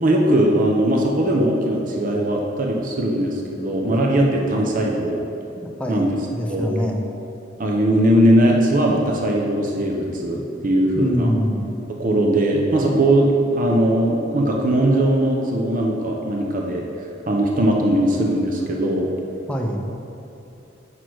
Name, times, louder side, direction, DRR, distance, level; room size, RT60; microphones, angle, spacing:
voice 1, 0.0-5.2 5.9-6.1 6.5-6.7 7.6-11.3 12.0-16.9 17.3-19.1, right 1 dB, 45° right, -1 dB, 0.8 m, -19 dB
voice 2, 5.6-7.0 10.9-11.7 19.5-19.9, equal, 5° left, 0 dB, 0.7 m, -24 dB
7.7 x 6.2 x 4.7 m, 2.7 s
head